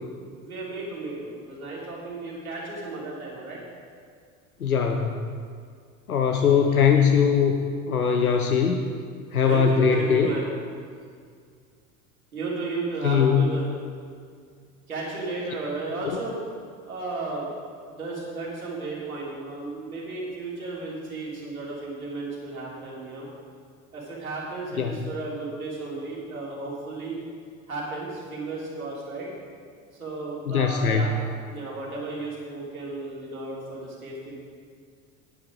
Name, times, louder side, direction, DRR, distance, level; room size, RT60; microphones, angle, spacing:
voice 1, 0.4-3.6 9.5-10.5 12.3-13.7 14.9-16.4 16.8-17.5 17.9-23.3 23.9-27.2 27.7-29.3 30.0-31.1 31.5-34.3, right 3 dB, 85° right, -5 dB, 3.0 m, -34 dB
voice 2, 4.6-5.2 6.1-7.6 7.9-8.8 9.3-10.3 13.0-13.5 16.0-16.2 24.8-25.1 30.5-31.1, left 6 dB, 85° left, 3 dB, 0.7 m, -21 dB
9.5 x 9.1 x 5.0 m, 2.1 s
figure-of-eight pair, 75°, 42 cm